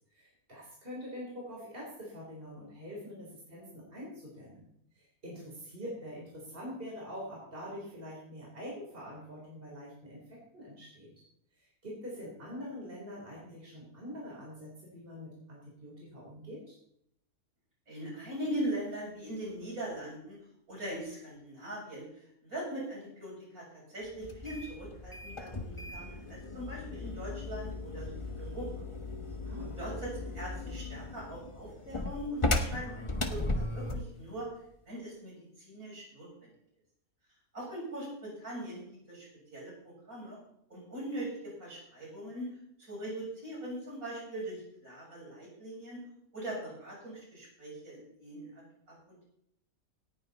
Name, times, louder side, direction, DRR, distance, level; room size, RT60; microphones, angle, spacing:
voice 1, 0.1-4.7 4.9-11.1 11.6-16.8 29.4-29.8, equal, 35° right, -4 dB, 4.3 m, -45 dB
voice 2, 17.9-20.4 20.7-28.7 29.8-34.5 34.9-36.5 37.5-39.3 39.5-40.4 40.7-42.5 42.8-46.0 46.3-49.0, right 1 dB, 70° right, -5 dB, 7.4 m, -41 dB
sound 1, 24.2-34.1, left 2 dB, 20° left, 1.1 m, -36 dB
18.0 x 10.0 x 4.1 m, 0.74 s
omnidirectional pair, 1.6 m